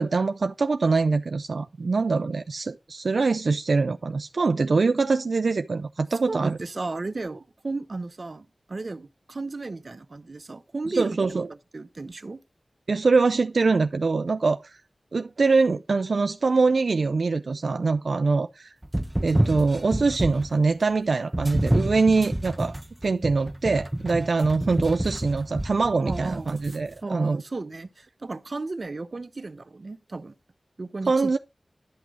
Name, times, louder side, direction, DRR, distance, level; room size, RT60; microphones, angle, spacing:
voice 1, 0.0-6.6 11.0-11.5 12.9-14.8 15.1-18.7 19.2-22.7 23.0-27.4 31.1-31.4, right 4 dB, 80° right, 0.5 m, -23 dB
voice 2, 6.3-11.2 11.7-12.4 26.0-26.5 27.0-30.3 30.8-31.3, right 3 dB, 60° right, 0.9 m, -34 dB
sound 1, 18.8-20.6 21.3-26.8, right 1 dB, 20° right, 1.0 m, -28 dB
11.5 x 6.1 x 4.8 m
wide cardioid pair, 50°, 0 cm